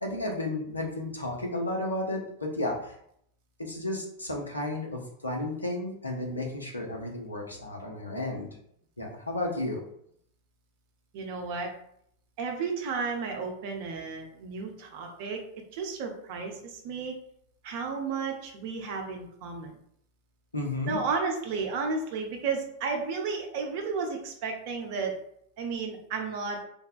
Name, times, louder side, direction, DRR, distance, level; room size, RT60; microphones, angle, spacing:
voice 1, 0.0-2.9 3.6-8.5 9.0-9.8 20.5-21.0, left 1 dB, 80° left, 0 dB, 0.6 m, -33 dB
voice 2, 11.1-11.7 12.4-15.4 15.7-17.1 17.6-19.7 20.9-25.2 25.6-26.6, right 4 dB, 45° right, 2 dB, 0.6 m, -33 dB
3.4 x 2.2 x 2.3 m, 0.70 s
figure-of-eight pair, 90°, 0 cm